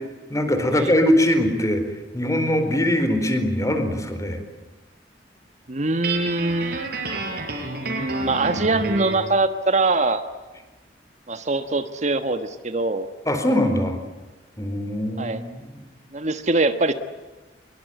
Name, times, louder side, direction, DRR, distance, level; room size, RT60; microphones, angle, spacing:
voice 1, 0.3-1.8 2.1-4.4 13.3-14.0 14.6-15.8, left 1 dB, 20° left, 8 dB, 4.4 m, -22 dB
voice 2, 5.7-6.9 7.8-10.2 11.3-13.1 15.2-15.4 16.1-16.9, right 2 dB, 40° right, 9 dB, 1.4 m, -23 dB
Guitar, 6.0-9.3, right 2 dB, 60° right, 5.9 m, -30 dB
25.5 x 23.0 x 9.3 m, 1.2 s
head